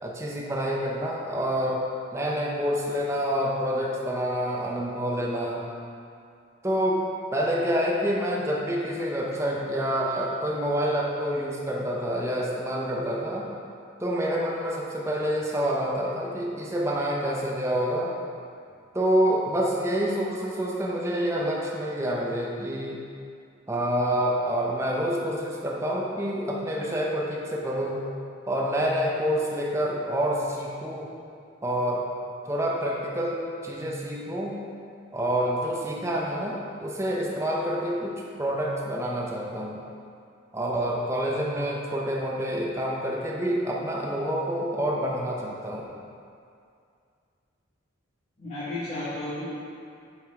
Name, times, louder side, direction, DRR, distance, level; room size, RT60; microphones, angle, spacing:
voice 1, 0.0-1.8 2.1-5.6 6.6-13.5 14.0-18.1 18.9-23.0 23.7-28.1 28.5-31.1 31.6-32.1 32.5-34.6 35.1-39.8 40.5-45.8, equal, 15° right, -3 dB, 0.8 m, -27 dB
voice 2, 48.4-49.5, left 1 dB, 40° left, -13 dB, 2.0 m, -33 dB
8.2 x 4.9 x 4.9 m, 2.4 s
head